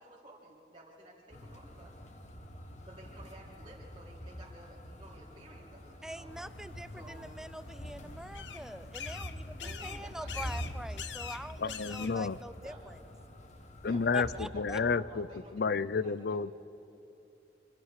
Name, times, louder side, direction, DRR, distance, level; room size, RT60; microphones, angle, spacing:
voice 1, 0.0-2.0 2.8-6.3 7.0-7.3 9.6-10.6 12.6-12.8 13.8-16.5, right 1 dB, 25° right, -6 dB, 2.1 m, -53 dB
sound 1, 1.3-14.5, equal, 40° left, 1.7 m, -46 dB
voice 2, 6.0-13.0 14.1-14.8, right 1 dB, 5° right, 14 dB, 0.4 m, -45 dB
sound 2, 6.3-12.4, left 7 dB, 75° left, 0.9 m, -46 dB
voice 3, 11.6-12.4 13.8-15.3 15.5-16.5, left 4 dB, 60° left, 18 dB, 0.5 m, -31 dB
26.5 x 25.0 x 4.9 m, 2.8 s
head